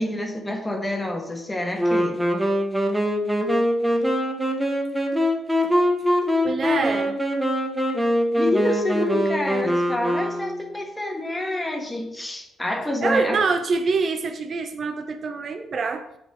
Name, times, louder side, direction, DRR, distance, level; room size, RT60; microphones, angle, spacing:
voice 1, 0.0-2.3 8.4-13.4, left 1 dB, 15° left, 3 dB, 1.3 m, -28 dB
Wind instrument woodwind instrument, 1.8-10.8, equal, 10° right, 0.9 m, -23 dB
voice 2, 6.4-7.1 13.0-16.1, right 4 dB, 50° right, 7 dB, 0.5 m, -25 dB
7.5 x 4.2 x 3.6 m, 0.82 s
cardioid pair, 90°, 0 cm